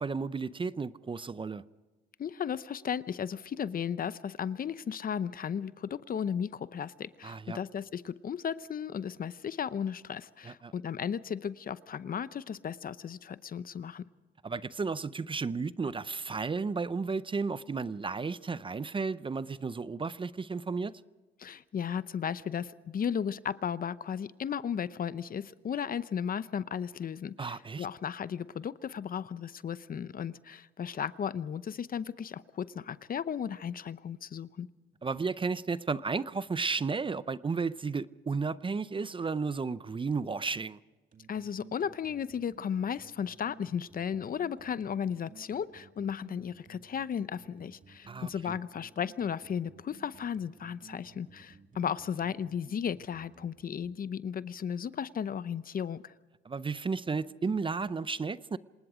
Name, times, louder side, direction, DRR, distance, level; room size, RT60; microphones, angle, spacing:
voice 1, 0.0-1.6 7.2-7.6 10.4-10.7 14.4-21.0 27.4-27.9 35.0-40.8 48.1-48.6 56.4-58.6, right 4 dB, 25° right, 0.6 m, -33 dB
voice 2, 2.2-14.0 21.4-34.7 41.3-56.1, left 8 dB, 45° left, 0.8 m, -35 dB
sound 1, 41.1-53.9, right 6 dB, 40° right, 2.3 m, -56 dB
27.0 x 19.5 x 5.0 m
cardioid pair, 90°, 20 cm